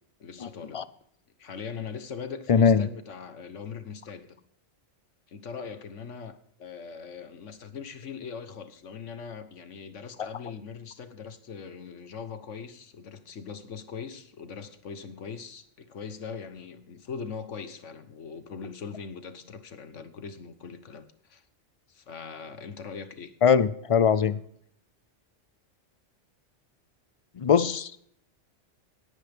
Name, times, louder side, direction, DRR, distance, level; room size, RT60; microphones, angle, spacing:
voice 1, 0.2-0.9 1.4-4.4 5.3-21.4 21.9-23.3, left 6 dB, 85° left, 1.5 m, -41 dB
voice 2, 2.5-2.9 23.4-24.4 27.4-28.0, left 6 dB, 50° left, 0.4 m, -21 dB
18.0 x 10.0 x 3.6 m
omnidirectional pair, 1.2 m